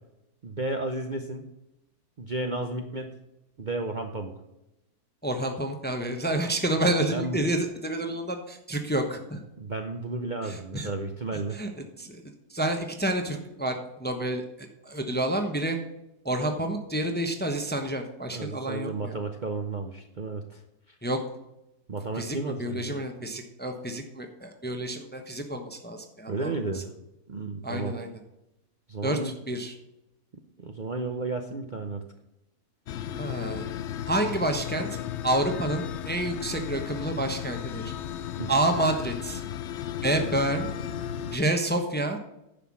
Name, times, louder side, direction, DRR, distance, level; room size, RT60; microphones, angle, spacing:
voice 1, 0.4-1.5 2.2-3.1 3.6-4.3 7.1-7.4 9.6-11.6 18.3-20.6 21.9-23.0 26.3-26.9 27.3-27.9 28.9-29.3 30.6-32.0 38.4-38.5, right 3 dB, 40° right, 4 dB, 0.8 m, -32 dB
voice 2, 5.2-9.4 10.4-10.9 11.5-11.7 12.0-12.2 12.5-15.8 16.2-19.2 21.0-21.2 22.2-26.8 27.6-28.1 29.0-29.2 29.5-29.7 33.2-33.6 34.1-34.9 35.2-37.9 38.5-39.4 40.0-40.7 41.3-42.2, right 1 dB, 10° left, 5 dB, 0.9 m, -29 dB
sound 1, 32.9-41.4, left 10 dB, 65° left, 0.7 m, -35 dB
10.0 x 5.8 x 7.2 m, 0.89 s
omnidirectional pair, 1.7 m